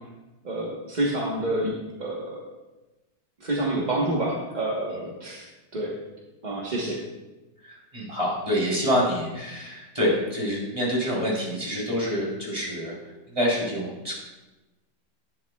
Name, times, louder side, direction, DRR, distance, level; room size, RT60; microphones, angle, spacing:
voice 1, 0.4-2.5 3.4-5.5 5.7-6.0 6.4-7.0, right 1 dB, 30° right, -4 dB, 0.8 m, -28 dB
voice 2, 7.6-12.9 13.3-14.1, equal, 15° right, -5 dB, 3.0 m, -27 dB
11.0 x 10.5 x 2.3 m, 1.1 s
omnidirectional pair, 2.2 m